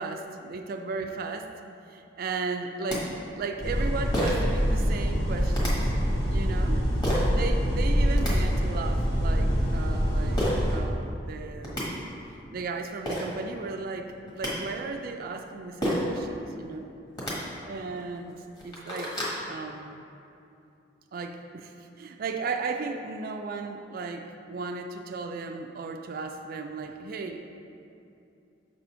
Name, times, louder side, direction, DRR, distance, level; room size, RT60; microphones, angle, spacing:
voice 1, 0.0-1.5 1.9-5.9 6.3-6.8 7.3-10.4 10.7-11.9 12.5-16.9 17.7-19.1 19.5-20.1 21.1-27.4, right 4 dB, 55° right, 4 dB, 0.4 m, -35 dB
sound 1, 2.6-2.7 2.9-3.0 4.1-4.5 5.5-5.7 7.0-7.3 8.0-8.3 10.4-10.6 11.3-11.4 11.6-11.8 12.7-12.8 13.1-13.3 14.1-14.5 15.8-16.1 17.1-17.3 18.0-18.1 18.5-19.4, equal, 25° left, 1.5 m, -29 dB
sound 2, 3.6-10.8, equal, 60° left, 1.5 m, -25 dB
6.7 x 4.1 x 5.5 m, 2.7 s
head